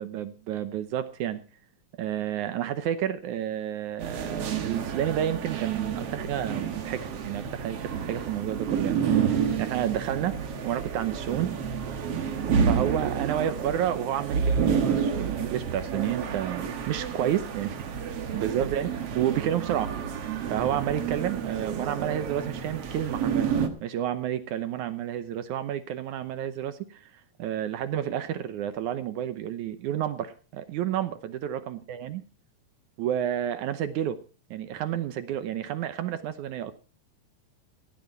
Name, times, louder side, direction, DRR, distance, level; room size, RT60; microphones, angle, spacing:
voice 1, 0.0-1.4 2.0-10.4 10.6-11.5 12.7-17.7 18.3-18.9 19.2-19.9 20.5-23.5 23.8-27.1 27.4-32.2 33.0-34.2 34.5-36.7, right 10 dB, 70° right, 11 dB, 1.9 m, -30 dB
sound 1, 4.0-23.7, right 7 dB, 50° right, 1.9 m, -29 dB
16.5 x 12.0 x 4.4 m, 0.35 s
omnidirectional pair, 4.4 m